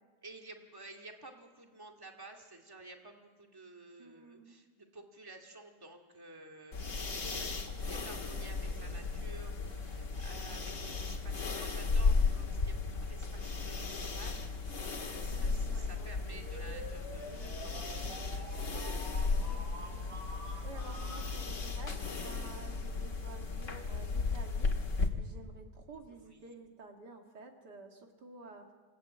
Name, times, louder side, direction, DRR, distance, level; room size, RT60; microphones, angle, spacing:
voice 1, 0.2-18.9 26.1-26.6, right 2 dB, 15° right, 2 dB, 2.3 m, -53 dB
voice 2, 4.0-4.6 7.2-7.4 7.7-8.0 9.6-10.1 15.3-16.5 17.3-17.6 18.0-18.5 19.4-19.6 19.9-20.1 20.6-24.7 25.2-28.6, right 3 dB, 70° right, 3 dB, 2.6 m, -52 dB
sound 1, 6.7-25.1, left 4 dB, 45° left, 2.2 m, -35 dB
sound 2, 16.3-21.3, right 1 dB, 40° right, 7.9 m, -48 dB
28.0 x 15.5 x 8.8 m, 1.4 s
omnidirectional pair, 1.8 m